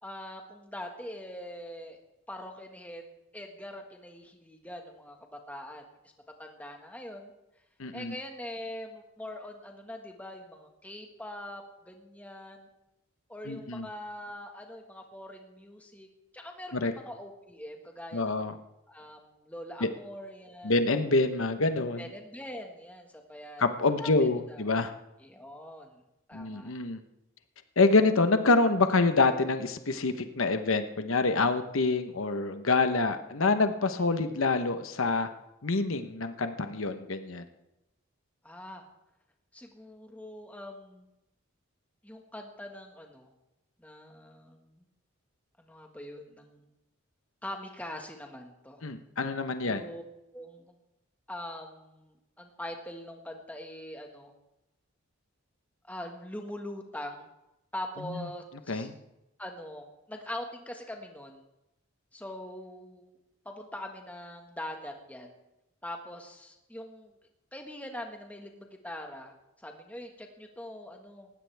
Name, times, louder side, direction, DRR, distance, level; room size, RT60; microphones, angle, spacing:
voice 1, 0.0-2.0 2.3-3.0 3.3-5.8 6.4-7.3 7.9-12.7 13.3-16.1 16.3-18.6 18.9-20.7 22.0-23.6 24.0-24.6 25.2-26.0 26.3-26.7 34.0-34.1 38.4-38.8 39.5-41.1 42.0-43.3 43.8-44.9 45.6-46.7 47.4-48.8 49.6-50.0 50.3-50.7 51.3-54.3 55.8-57.3 57.7-58.9 59.4-61.4 62.1-63.2 63.4-65.3 65.8-67.2 67.5-71.3, left 1 dB, 5° left, 3 dB, 1.7 m, -43 dB
voice 2, 7.8-8.1 13.5-13.9 16.7-16.9 18.1-18.5 19.8-19.9 20.6-22.1 23.6-24.9 26.3-27.0 27.8-35.3 35.6-37.4 48.8-49.8 58.1-58.2 58.7-58.9, left 3 dB, 75° left, 8 dB, 1.0 m, -26 dB
19.5 x 15.5 x 3.5 m, 0.92 s
head